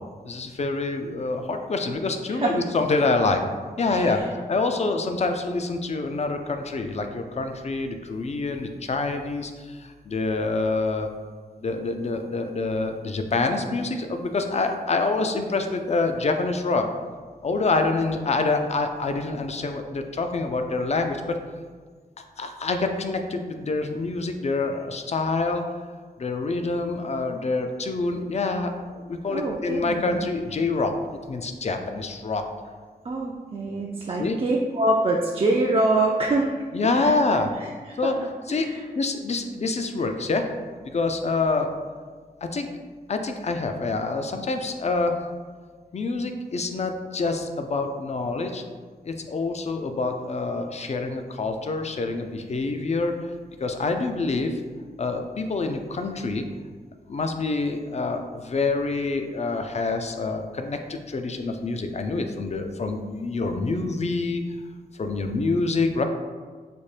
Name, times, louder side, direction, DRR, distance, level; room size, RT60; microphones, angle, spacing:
voice 1, 0.2-3.4 3.8-11.1 11.6-16.8 17.4-21.4 22.4-25.6 26.2-32.4 34.2-34.4 36.7-37.5 38.0-38.2 38.5-38.7 39.0-40.4 40.9-41.8 42.5-42.7 43.1-45.2 45.9-48.6 49.0-53.2 53.6-54.6 55.0-56.4 57.1-64.4 65.0-66.0, left 3 dB, 45° left, 6 dB, 0.4 m, -26 dB
voice 2, 29.3-30.3 33.0-36.6 36.8-37.1 38.0-38.1 38.5-38.8, right 2 dB, 35° right, -2 dB, 0.4 m, -25 dB
4.1 x 2.1 x 3.2 m, 1.5 s
cardioid pair, 60°, 16 cm